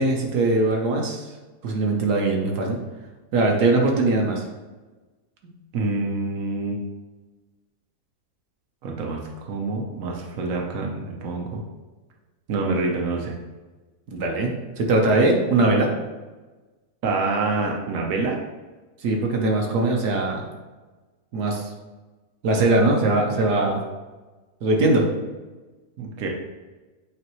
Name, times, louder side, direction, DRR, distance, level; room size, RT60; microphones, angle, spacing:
voice 1, 0.0-1.3 1.6-2.8 3.3-4.4 14.1-14.5 14.8-15.9 19.0-20.4 21.3-21.7 22.4-23.8 24.6-25.1, right 2 dB, 85° right, 0 dB, 1.6 m, -21 dB
voice 2, 5.7-6.8 8.8-11.6 12.5-13.3 17.0-18.4 26.0-26.3, right 3 dB, 60° right, 0 dB, 1.3 m, -26 dB
8.3 x 3.9 x 3.1 m, 1.2 s
omnidirectional pair, 1.7 m